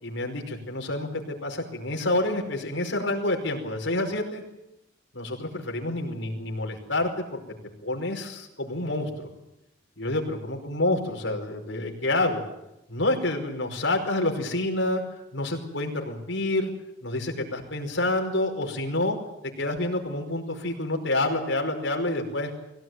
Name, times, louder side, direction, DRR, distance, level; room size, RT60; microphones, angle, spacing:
voice 1, 0.0-4.4 5.1-7.4 7.8-9.1 10.0-12.4 12.9-15.0 15.3-16.7 17.0-19.2 19.6-22.5, left 2 dB, 80° left, 2 dB, 5.2 m, -28 dB
22.0 x 17.5 x 9.4 m, 0.88 s
head